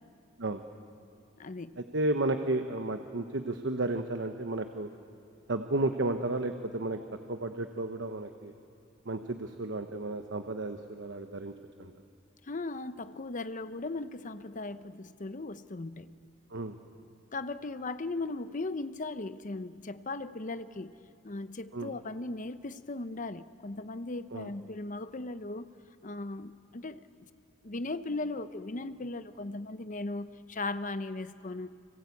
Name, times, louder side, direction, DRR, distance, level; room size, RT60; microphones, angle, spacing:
voice 1, 1.4-1.8 12.4-16.1 17.3-20.9 21.2-25.7 26.0-27.1 27.6-31.7, left 2 dB, 40° left, 12 dB, 0.8 m, -37 dB
voice 2, 1.9-4.9 5.5-7.0 7.3-8.5 9.1-11.5 11.8-11.9 16.5-16.8 21.7-21.9 24.3-24.5, right 2 dB, 65° right, 7 dB, 1.0 m, -32 dB
26.0 x 25.0 x 8.5 m, 2.6 s
head